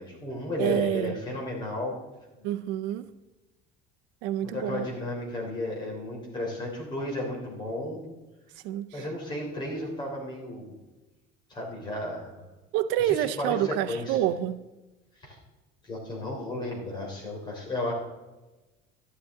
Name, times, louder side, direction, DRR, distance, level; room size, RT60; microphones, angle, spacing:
voice 1, 0.0-2.0 4.4-8.1 8.9-10.7 11.5-12.4 13.0-14.2 15.2-15.4 15.8-17.9, left 1 dB, 25° left, -2 dB, 3.5 m, -33 dB
voice 2, 0.6-1.2 2.4-3.1 4.2-4.9 8.6-9.0 12.7-14.6, right 12 dB, 75° right, 11 dB, 0.6 m, -28 dB
13.0 x 11.5 x 3.7 m, 1.1 s
cardioid pair, 170°, 19 cm